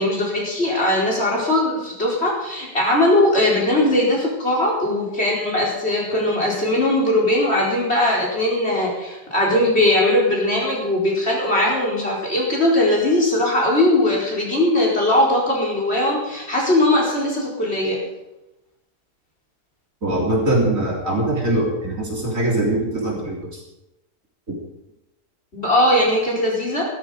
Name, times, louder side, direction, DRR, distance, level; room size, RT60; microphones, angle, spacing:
voice 1, 0.0-18.0 25.5-26.8, left 1 dB, 40° left, -2 dB, 4.8 m, -19 dB
voice 2, 20.0-23.6 24.5-24.6, right 1 dB, 50° right, -3 dB, 4.2 m, -22 dB
16.0 x 13.5 x 5.2 m, 0.95 s
omnidirectional pair, 1.7 m